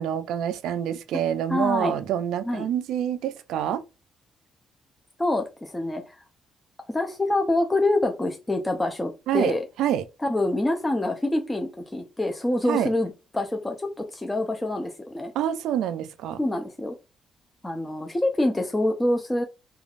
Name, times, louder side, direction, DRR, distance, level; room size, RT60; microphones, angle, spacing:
voice 1, 0.0-3.8 9.3-10.1 12.7-12.9 15.3-16.4, right 10 dB, 85° right, 0.3 m, -27 dB
voice 2, 1.5-1.9 2.5-2.7 5.2-6.2 6.9-9.6 10.3-15.3 16.4-17.0 17.6-19.4, left 1 dB, 15° left, 0.4 m, -26 dB
3.2 x 2.3 x 2.4 m
cardioid pair, 90°, 0 cm